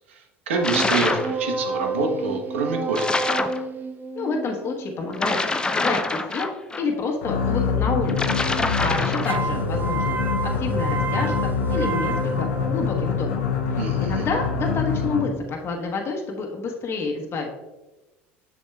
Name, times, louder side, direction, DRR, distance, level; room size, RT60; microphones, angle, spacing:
sound 1, 0.5-5.9 9.2-13.2, right 3 dB, 30° right, 0.6 m, -30 dB
voice 1, 0.5-3.1 13.8-14.3, right 4 dB, 85° right, 3 dB, 0.9 m, -26 dB
sound 2, 0.6-1.3 2.9-3.6 5.1-6.8 8.1-9.5, left 3 dB, 15° left, 0.5 m, -25 dB
voice 2, 4.1-5.4 5.7-6.5 6.7-8.4 8.7-10.2 10.4-13.4 13.7-17.5, left 4 dB, 40° left, 1 dB, 1.1 m, -28 dB
sound 3, 7.2-15.5, left 5 dB, 80° left, 0.7 m, -25 dB
7.1 x 6.1 x 2.3 m, 1.1 s
hypercardioid pair, 75°, 6 cm